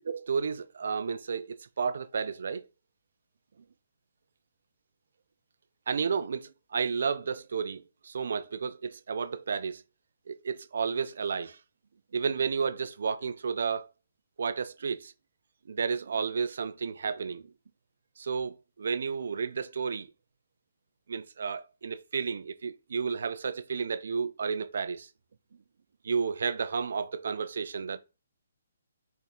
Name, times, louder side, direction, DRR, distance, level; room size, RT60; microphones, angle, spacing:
voice 1, 0.1-2.7 5.9-9.8 10.3-11.6 12.1-13.9 14.4-15.1 15.7-17.5 18.2-20.1 21.1-25.1 26.0-28.0, right 5 dB, 65° right, 0.5 m, -32 dB
4.4 x 3.4 x 3.0 m
figure-of-eight pair, 140°, 0 cm